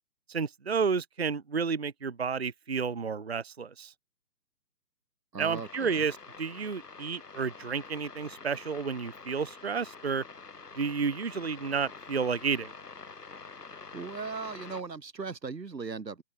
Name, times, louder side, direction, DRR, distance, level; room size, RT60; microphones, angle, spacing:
voice 1, 0.3-3.9 5.4-10.2 10.7-12.7, right 5 dB, 40° right, 0.6 m, -31 dB
voice 2, 5.3-6.1 13.9-16.2, right 4 dB, 90° right, 1.3 m, -38 dB
sound 1, 5.5-14.8, left 4 dB, 70° left, 2.3 m, -47 dB
open air
figure-of-eight pair, 150°, 49 cm